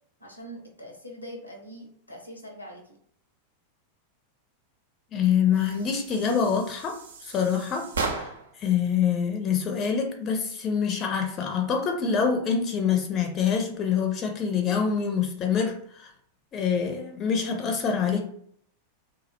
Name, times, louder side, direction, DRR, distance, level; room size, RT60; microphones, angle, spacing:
voice 1, 0.2-3.0, equal, 85° left, 2 dB, 0.5 m, -43 dB
voice 2, 5.1-8.3 8.6-16.1 16.5-18.3, left 7 dB, 30° left, 4 dB, 0.4 m, -26 dB
sound 1, 5.5-8.6, right 4 dB, 70° right, 0.4 m, -36 dB
2.2 x 2.1 x 2.7 m, 0.65 s
figure-of-eight pair, 90°, 0 cm